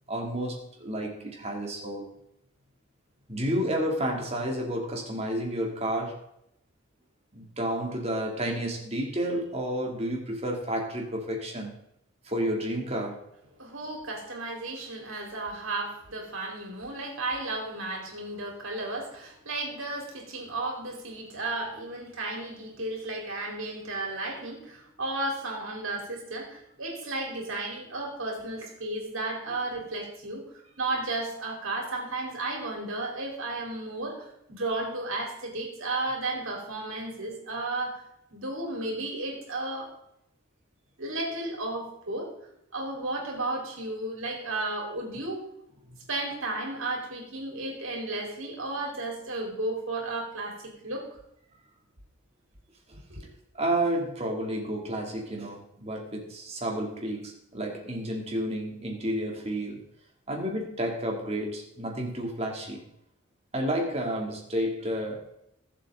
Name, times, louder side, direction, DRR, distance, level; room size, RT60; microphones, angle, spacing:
voice 1, 0.1-2.1 3.3-6.2 7.3-11.7 12.2-13.2 53.5-59.8 60.3-62.8 63.5-65.3, right 1 dB, 30° right, 0 dB, 2.7 m, -31 dB
voice 2, 13.6-30.4 30.8-38.0 38.3-39.9 41.0-42.3 42.7-45.4 46.1-51.2 53.1-53.2, right 2 dB, 75° right, 0 dB, 4.1 m, -33 dB
20.5 x 7.8 x 3.8 m, 0.78 s
head